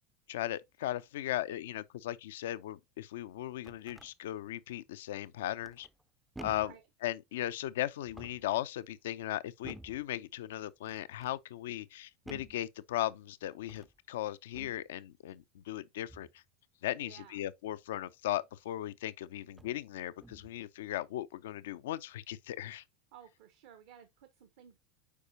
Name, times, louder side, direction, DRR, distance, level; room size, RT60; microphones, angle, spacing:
voice 1, 0.3-5.9 6.4-6.7 7.0-16.3 16.8-22.8, left 13 dB, 70° left, 0.5 m, -37 dB
sound 1, 3.3-4.1 5.6-6.0 6.3-6.8 8.0-8.6 9.6-10.1 10.9-11.4 12.3-12.6 13.6-14.0 14.5-14.9 16.1-16.4 18.5-18.6 19.5-19.8 20.2-20.6, right 2 dB, 5° right, 0.5 m, -51 dB
voice 2, 17.0-17.4 23.1-24.8, right 9 dB, 60° right, 0.9 m, -55 dB
8.3 x 4.8 x 2.7 m
hypercardioid pair, 80°, 0 cm